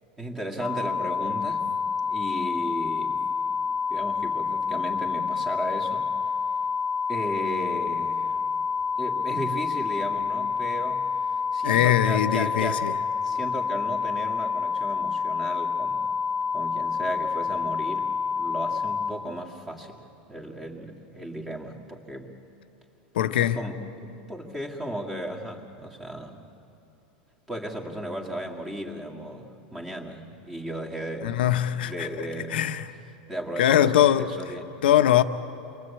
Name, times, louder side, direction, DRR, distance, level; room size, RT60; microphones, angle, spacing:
voice 1, 0.2-1.7 2.1-3.2 3.9-6.1 7.1-8.4 9.0-11.1 11.5-12.8 13.2-16.1 16.5-18.1 18.3-20.0 20.3-22.3 23.4-26.4 27.5-31.3 31.7-32.5 33.3-34.7, right 1 dB, 10° right, 2.1 m, -35 dB
sound 1, 0.6-19.1, left 5 dB, 20° left, 1.5 m, -28 dB
voice 2, 11.6-12.9 23.1-23.7 31.2-32.9 33.6-34.3 34.8-35.2, left 11 dB, 85° left, 1.1 m, -22 dB
28.5 x 22.5 x 8.4 m
supercardioid pair, 155°, 5 cm